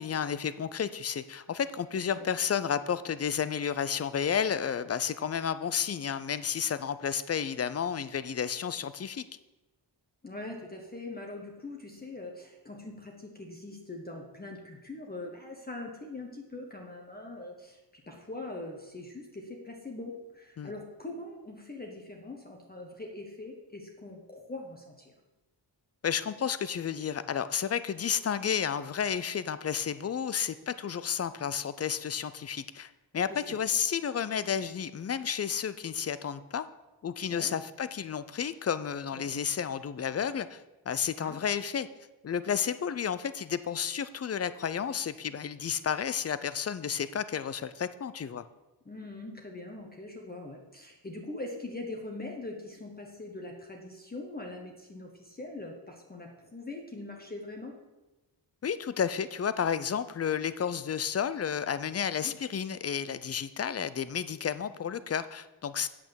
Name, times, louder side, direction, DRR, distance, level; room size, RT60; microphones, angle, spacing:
voice 1, 0.0-9.3 20.6-20.7 26.0-36.7 37.0-41.9 42.2-48.4 58.6-65.9, left 7 dB, 35° left, 14 dB, 0.4 m, -31 dB
voice 2, 10.2-17.8 18.1-25.1 33.3-33.6 37.3-37.5 39.1-39.2 41.2-41.4 48.8-57.7 62.2-62.3, left 2 dB, 20° left, 1 dB, 1.1 m, -42 dB
8.6 x 6.0 x 6.9 m, 1.1 s
wide cardioid pair, 145°, 43 cm